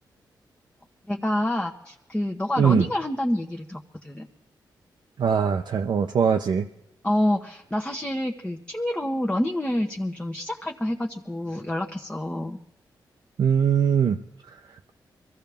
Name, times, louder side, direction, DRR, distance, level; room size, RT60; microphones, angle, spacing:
voice 1, 1.1-4.3 7.0-12.6, left 1 dB, 10° left, 0 dB, 1.1 m, -27 dB
voice 2, 2.6-2.9 5.2-6.7 13.4-14.2, right 7 dB, 65° right, 3 dB, 0.7 m, -21 dB
23.5 x 14.5 x 3.5 m, 0.81 s
cardioid pair, 70°, 8 cm